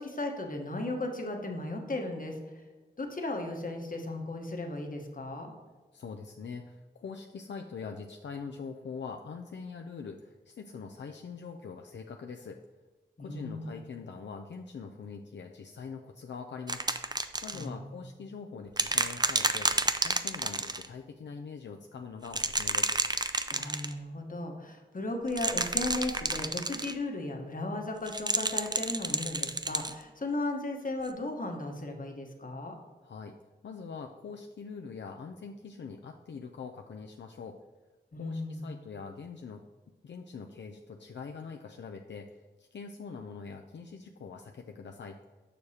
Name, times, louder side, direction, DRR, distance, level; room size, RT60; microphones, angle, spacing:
voice 1, 0.0-2.6 3.0-5.5 13.2-13.8 17.5-18.0 23.5-32.7 38.1-38.7, left 2 dB, 45° left, 3 dB, 1.1 m, -36 dB
voice 2, 5.9-12.6 13.2-19.7 20.0-22.9 33.0-33.4 33.6-37.6 38.2-39.6 40.0-45.2, left 5 dB, 75° left, 3 dB, 0.4 m, -43 dB
sound 1, 16.7-17.6 18.8-20.9 22.3-23.9 25.3-26.9 28.1-29.9 31.1-31.2, right 2 dB, 20° right, 0.4 m, -30 dB
6.8 x 6.3 x 2.8 m, 1.3 s
cardioid pair, 45°, 19 cm